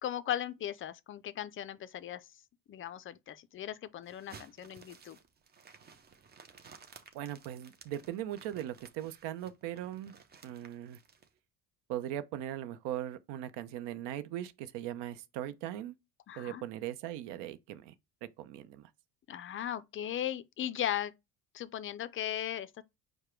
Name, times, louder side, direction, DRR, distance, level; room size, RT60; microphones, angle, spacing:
voice 1, 0.0-2.2 2.7-5.2 16.3-16.6 19.3-21.1 21.5-22.8, left 11 dB, 30° left, 0.4 m, -37 dB
sound 1, 4.0-11.3, right 5 dB, 25° right, 0.6 m, -56 dB
voice 2, 7.1-10.1 10.4-11.0 11.9-15.9 16.4-17.9 18.2-18.9, right 12 dB, 90° right, 0.7 m, -39 dB
4.9 x 2.2 x 4.4 m
cardioid pair, 130°, 41 cm